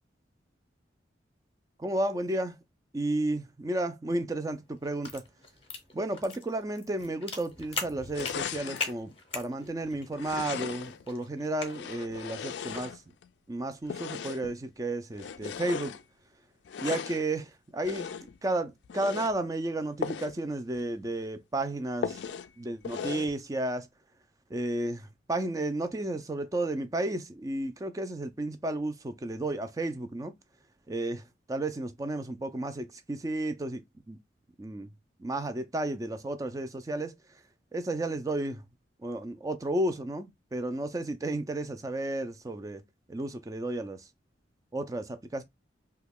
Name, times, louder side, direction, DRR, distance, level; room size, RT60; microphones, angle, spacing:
voice 1, 1.8-2.5 2.9-5.2 5.9-13.0 13.5-16.0 16.8-18.1 18.4-22.2 22.6-23.9 24.5-30.3 30.9-34.2 34.6-34.9 35.2-37.1 37.7-38.6 39.0-42.8 43.1-44.0 44.7-45.4, right 1 dB, 20° right, 0.4 m, -32 dB
sound 1, 4.5-12.9, left 4 dB, 30° left, 0.7 m, -41 dB
sound 2, 8.1-9.0 10.1-11.0 11.6-13.3 13.8-14.6 15.1-16.0 16.6-17.3 17.8-18.4 18.8-19.3 20.0-20.4 20.7-20.8 21.2-21.3 22.0-22.5 22.8-23.3, left 7 dB, 65° left, 0.3 m, -37 dB
2.9 x 2.3 x 3.4 m
head